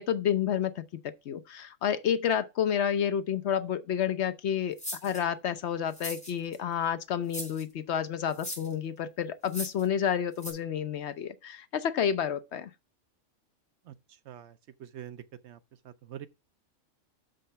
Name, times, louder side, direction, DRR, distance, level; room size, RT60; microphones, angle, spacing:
voice 1, 0.0-12.7, left 8 dB, 65° left, 0.9 m, -30 dB
sound 1, 4.8-5.2 5.9-6.6 7.3-7.6 8.3-8.7 9.4-9.8 10.4-10.5, equal, 5° left, 4.2 m, -38 dB
voice 2, 14.8-15.6 15.8-16.3, right 10 dB, 65° right, 0.8 m, -44 dB
6.6 x 5.3 x 5.6 m
omnidirectional pair, 1.3 m